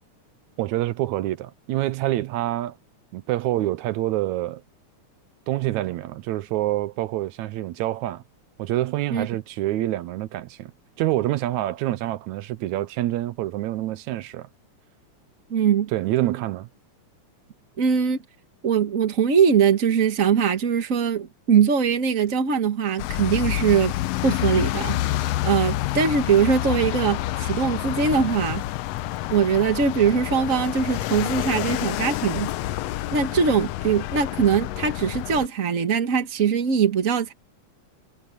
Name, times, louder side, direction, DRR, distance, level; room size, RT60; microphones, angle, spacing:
voice 1, 0.6-2.8 3.1-4.6 5.5-8.2 8.6-10.7 11.0-14.5 15.9-16.7, right 15 dB, 80° right, 2.0 m, -26 dB
voice 2, 15.5-15.9 17.8-18.2 18.6-23.9 24.2-28.6 29.3-32.5 33.1-37.3, right 6 dB, 50° right, 1.0 m, -21 dB
sound 1, 23.0-35.5, left 15 dB, 80° left, 1.5 m, -28 dB
omnidirectional pair, 3.5 m